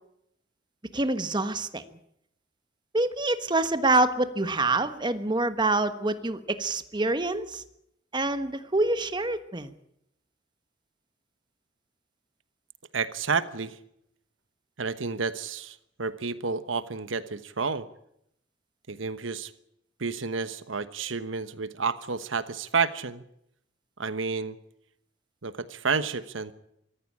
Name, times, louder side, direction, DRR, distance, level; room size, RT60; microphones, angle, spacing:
voice 1, 0.9-1.8 2.9-7.6 8.1-9.7, right 2 dB, 25° right, 10 dB, 1.3 m, -26 dB
voice 2, 12.9-13.8 14.8-17.8 18.9-19.5 20.0-23.2 24.0-24.6 25.4-26.5, right 5 dB, 90° right, 13 dB, 1.2 m, -30 dB
24.5 x 14.5 x 8.7 m, 0.77 s
head